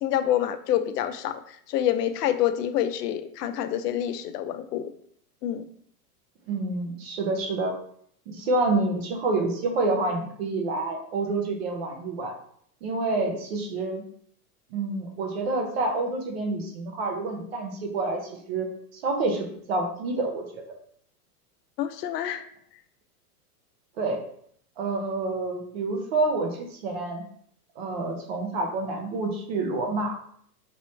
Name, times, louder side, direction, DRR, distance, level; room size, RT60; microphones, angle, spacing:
voice 1, 0.0-4.9 5.4-5.6 21.8-22.5, left 11 dB, 85° left, 9 dB, 0.5 m, -27 dB
voice 2, 6.5-7.7 8.3-12.3 12.8-14.0 14.7-18.2 18.5-18.7 18.9-20.6 24.0-24.2 24.8-27.2 27.8-30.1, right 3 dB, 40° right, 2 dB, 0.7 m, -28 dB
3.0 x 2.9 x 3.0 m, 0.64 s
supercardioid pair, 170°, 46 cm